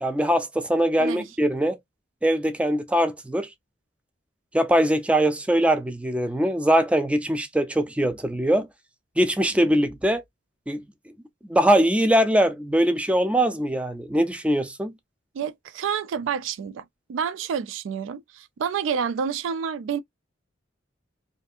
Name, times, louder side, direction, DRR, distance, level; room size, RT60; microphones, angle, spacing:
voice 1, 0.0-1.8 2.2-3.5 4.5-8.7 9.2-10.2 10.7-10.8 11.4-14.9, right 1 dB, 5° right, 0.3 m, -22 dB
voice 2, 15.3-16.8 17.1-20.0, right 7 dB, 80° right, 0.3 m, -29 dB
2.5 x 2.5 x 2.3 m
head